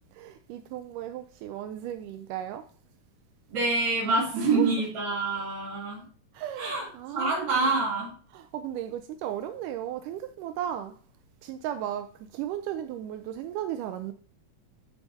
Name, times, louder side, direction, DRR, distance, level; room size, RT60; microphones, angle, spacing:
voice 1, 0.0-2.7 4.4-4.7 6.3-7.7 8.3-11.0 11.4-14.1, right 11 dB, 85° right, 1.8 m, -35 dB
voice 2, 3.5-6.1 6.6-8.1, right 3 dB, 50° right, 3.9 m, -27 dB
12.5 x 4.6 x 2.7 m
omnidirectional pair, 4.2 m